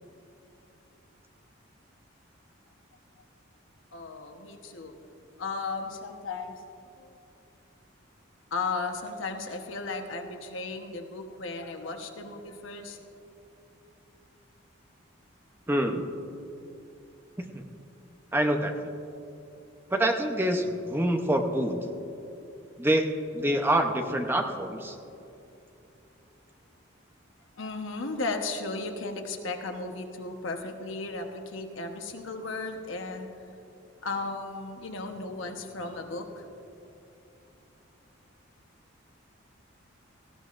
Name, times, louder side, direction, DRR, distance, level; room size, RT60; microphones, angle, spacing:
voice 1, 3.9-4.9 5.4-6.5 7.0-7.1 8.5-13.0 27.6-33.3 34.0-36.5, left 3 dB, 70° left, 4 dB, 1.1 m, -35 dB
voice 2, 15.7-16.1 17.5-17.6 18.3-18.7 19.9-21.8 22.8-25.0, right 1 dB, 10° right, 4 dB, 0.7 m, -26 dB
18.0 x 15.0 x 2.5 m, 2.8 s
head